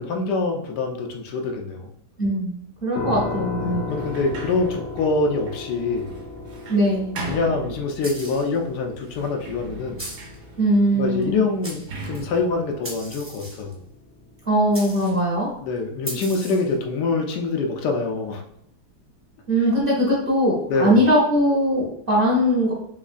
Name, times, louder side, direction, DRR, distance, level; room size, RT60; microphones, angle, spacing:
voice 1, 0.0-1.9 3.6-6.2 7.2-10.1 10.9-13.8 15.6-18.4 20.7-21.0, left 3 dB, 85° left, 3 dB, 1.3 m, -25 dB
voice 2, 2.2-3.9 6.7-7.1 10.6-11.4 14.5-15.5 19.5-22.7, equal, 45° right, -4 dB, 0.8 m, -20 dB
sound 1, 2.9-15.8, left 3 dB, 65° left, 0.8 m, -37 dB
Sliding door, 3.9-8.4 9.0-13.9, right 2 dB, 80° right, 1.4 m, -39 dB
sound 2, 8.0-8.6 10.0-10.4 11.2-11.3 11.6-12.3 12.8-13.7 14.7-15.2 16.0-16.7, right 1 dB, 10° right, 0.6 m, -37 dB
3.6 x 3.1 x 2.4 m, 0.75 s
omnidirectional pair, 1.8 m